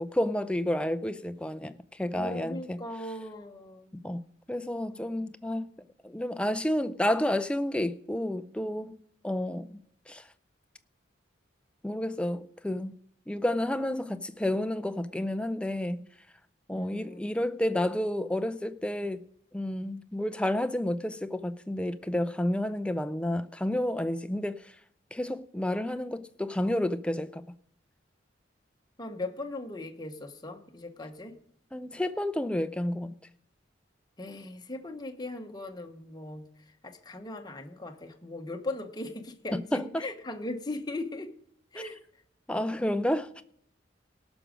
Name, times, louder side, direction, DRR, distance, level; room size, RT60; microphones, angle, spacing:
voice 1, 0.0-2.8 4.0-4.2 4.5-5.7 6.0-9.0 9.2-9.8 10.1-10.3 11.8-13.0 13.3-16.0 16.7-19.2 19.5-24.7 25.1-27.4 31.7-33.1 39.7-39.9 42.5-43.4, left 1 dB, 5° left, 0.4 m, -30 dB
voice 2, 2.1-3.9 16.7-17.4 29.0-31.4 34.2-41.3 41.7-42.0, left 2 dB, 20° left, 1.0 m, -39 dB
18.0 x 6.2 x 5.0 m
head